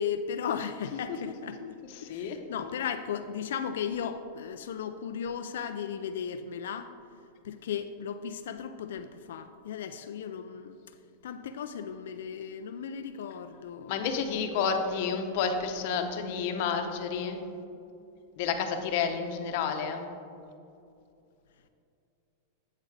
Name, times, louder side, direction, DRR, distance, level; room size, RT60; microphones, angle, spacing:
voice 1, 0.0-6.9 7.4-10.8 11.2-14.1, left 7 dB, 80° left, 9 dB, 0.3 m, -36 dB
voice 2, 2.0-2.4 13.9-17.4 18.4-20.0, left 6 dB, 55° left, 6 dB, 0.8 m, -30 dB
8.5 x 7.4 x 3.3 m, 2.6 s
supercardioid pair, 135°, 0 cm